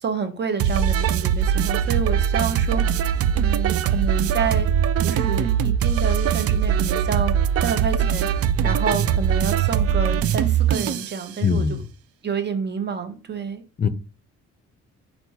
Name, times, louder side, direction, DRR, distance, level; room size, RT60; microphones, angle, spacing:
voice 1, 0.0-3.1 3.3-4.7 5.0-7.3 7.6-8.3 8.6-11.8 12.2-13.6, right 5 dB, 35° right, 0.9 m, -28 dB
sound 1, 0.6-11.2, right 8 dB, 50° right, 0.4 m, -21 dB
voice 2, 11.4-11.9 13.8-13.9, left 5 dB, 30° left, 0.5 m, -21 dB
4.4 x 4.3 x 2.8 m
cardioid pair, 90°, 30 cm